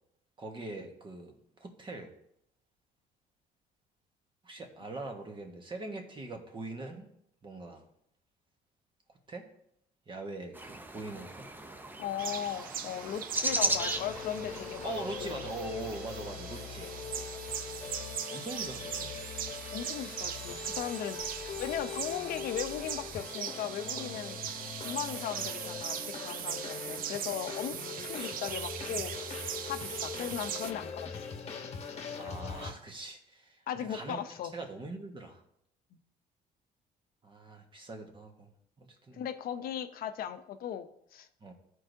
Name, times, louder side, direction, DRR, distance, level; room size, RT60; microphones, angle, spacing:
voice 1, 0.4-2.1 4.4-7.1 7.4-7.8 9.3-9.5 10.1-11.5 14.8-16.9 18.3-19.1 28.1-28.3 32.2-34.2 34.5-35.4 37.2-38.5 38.8-39.2 41.4-41.5, right 2 dB, 30° right, 3 dB, 1.4 m, -42 dB
sound 1, 10.5-16.8, right 2 dB, 10° right, 0.6 m, -37 dB
voice 2, 12.0-14.9 15.2-15.5 19.7-24.4 24.8-31.7 33.7-34.5 39.1-41.3, left 10 dB, 60° left, 10 dB, 0.6 m, -38 dB
sound 2, 12.2-30.7, right 9 dB, 55° right, 0.5 m, -40 dB
sound 3, 13.5-32.7, left 6 dB, 40° left, 1.1 m, -42 dB
13.5 x 4.7 x 2.7 m, 0.74 s
cardioid pair, 110°, 17 cm